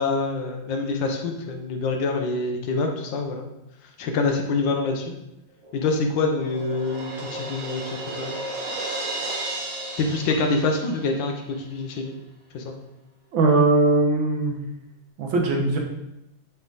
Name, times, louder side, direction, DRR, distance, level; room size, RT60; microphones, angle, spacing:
voice 1, 0.0-3.5 3.8-5.1 5.7-8.4 10.0-12.1 12.5-12.7, left 3 dB, 70° left, 4 dB, 1.4 m, -26 dB
Crash cymbal, 5.6-11.3, right 2 dB, 50° right, 1.0 m, -34 dB
voice 2, 13.3-14.6 15.2-15.8, right 3 dB, 80° right, 1 dB, 1.7 m, -20 dB
6.9 x 3.5 x 3.9 m, 0.89 s
omnidirectional pair, 2.2 m